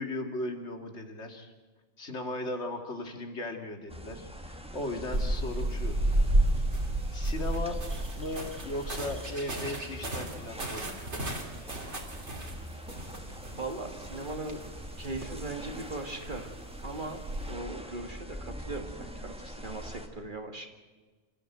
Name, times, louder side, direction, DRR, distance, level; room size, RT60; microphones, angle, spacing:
voice 1, 0.0-1.5 2.0-6.0 7.1-7.8 8.2-11.0, left 1 dB, 75° left, 5 dB, 2.5 m, -37 dB
sound 1, 3.9-20.1, equal, 5° right, 1.6 m, -45 dB
sound 2, 5.1-17.5, right 1 dB, 75° right, 3.1 m, -33 dB
voice 2, 13.6-14.6 15.0-16.5 16.8-17.2 17.5-20.7, right 2 dB, 45° right, 4 dB, 1.8 m, -39 dB
27.5 x 14.0 x 7.8 m, 1.3 s
omnidirectional pair, 1.2 m